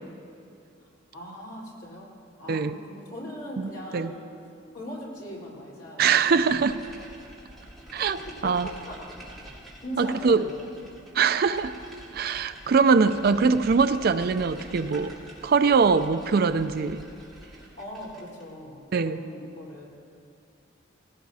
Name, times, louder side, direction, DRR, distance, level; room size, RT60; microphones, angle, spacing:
voice 1, 0.8-2.1 2.4-4.3 4.7-6.7 8.3-9.1 9.8-10.7 13.1-13.4 17.8-19.9, equal, 60° left, -5 dB, 3.8 m, -40 dB
voice 2, 3.6-4.1 6.0-6.7 7.9-8.7 10.0-10.5 11.1-11.7 12.1-15.1 15.4-17.0 18.9-19.2, right 5 dB, 50° right, 12 dB, 0.4 m, -22 dB
sound 1, 6.2-18.5, right 1 dB, ahead, 3.0 m, -47 dB
19.0 x 17.0 x 2.7 m, 2.5 s
head